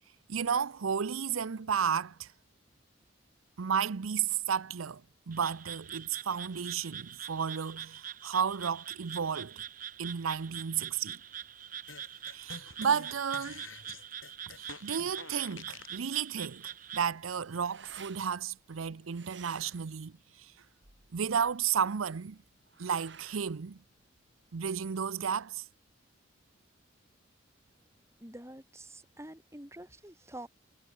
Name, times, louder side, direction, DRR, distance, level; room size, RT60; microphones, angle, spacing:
voice 1, 0.3-2.3 3.6-5.0 5.3-9.6 10.0-11.2 12.3-13.6 14.5-20.5 21.1-22.4 22.8-23.8 24.5-25.7, right 7 dB, 90° right, 0.6 m, -33 dB
Frog, 5.3-17.1, right 9 dB, 40° right, 1.0 m, -44 dB
sound 1, 11.9-16.0, left 5 dB, 80° left, 6.9 m, -48 dB
sound 2, 16.8-24.7, right 7 dB, 60° right, 4.2 m, -56 dB
voice 2, 28.2-30.5, right 1 dB, 15° right, 6.7 m, -47 dB
head